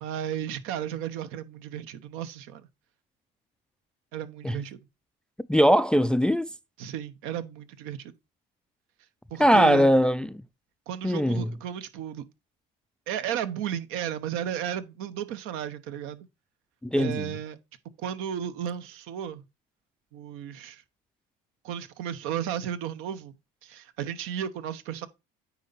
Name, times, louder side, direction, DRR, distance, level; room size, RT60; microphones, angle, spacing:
voice 1, 0.0-2.7 4.1-4.8 6.8-8.1 9.3-9.9 10.9-12.2 13.1-16.3 16.9-17.6 18.0-19.4 20.1-20.8 21.6-23.4 23.6-25.1, right 9 dB, 75° right, 1.0 m, -34 dB
voice 2, 5.5-6.5 9.4-10.3 11.0-11.5 16.8-17.3, equal, 5° left, 0.3 m, -21 dB
9.2 x 4.2 x 4.0 m
supercardioid pair, 100°, 21 cm